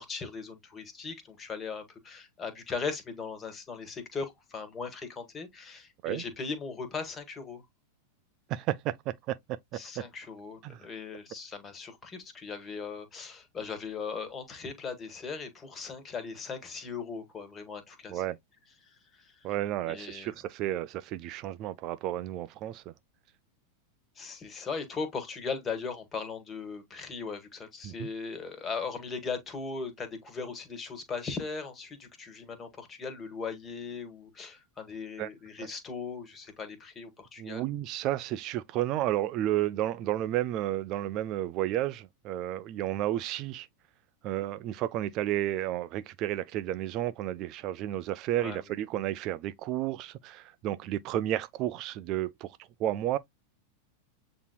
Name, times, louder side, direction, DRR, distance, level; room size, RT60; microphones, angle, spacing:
voice 1, 0.0-7.6 9.7-18.2 19.2-19.4 19.9-20.3 24.2-37.6 48.4-48.6, left 5 dB, 20° left, 1.5 m, -38 dB
voice 2, 8.5-9.8 10.6-10.9 18.1-18.4 19.4-22.8 27.8-28.1 35.2-35.3 35.6-35.7 37.4-43.7 44.2-53.2, right 13 dB, 40° right, 0.3 m, -32 dB
8.1 x 2.8 x 2.2 m
figure-of-eight pair, 90°, 0 cm